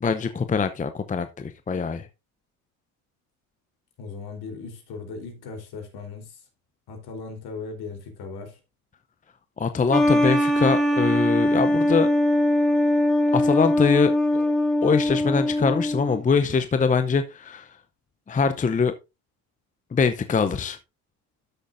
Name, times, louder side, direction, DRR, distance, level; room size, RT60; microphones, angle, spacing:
voice 1, 0.0-2.1 9.6-12.1 13.3-14.5 14.8-17.7 18.3-18.9 19.9-20.8, left 5 dB, 20° left, 0.7 m, -23 dB
voice 2, 4.0-6.4 6.9-8.6, left 4 dB, 60° left, 3.9 m, -37 dB
sound 1, 9.9-16.2, left 1 dB, ahead, 1.7 m, -21 dB
13.0 x 6.2 x 2.6 m
supercardioid pair, 80°, 44 cm